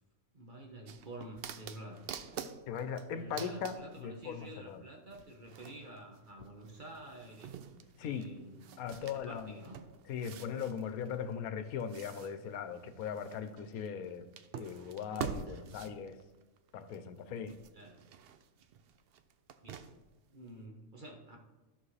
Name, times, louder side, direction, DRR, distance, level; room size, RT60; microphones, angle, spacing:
voice 1, 0.3-2.4 3.1-7.6 8.0-8.6 9.0-9.8 15.5-15.6 17.7-18.0 19.6-19.8 20.3-21.4, right 1 dB, 35° right, 1 dB, 1.2 m, -49 dB
sound 1, 0.9-4.5 5.1-17.2 17.5-20.2 20.6-20.7, right 7 dB, 65° right, 0.6 m, -47 dB
voice 2, 2.7-4.8 8.0-8.3 8.8-9.6 10.1-14.3 14.5-16.2 16.7-17.6, left 7 dB, 85° left, 11 dB, 1.1 m, -39 dB
13.5 x 6.0 x 3.2 m, 1.1 s
omnidirectional pair, 1.5 m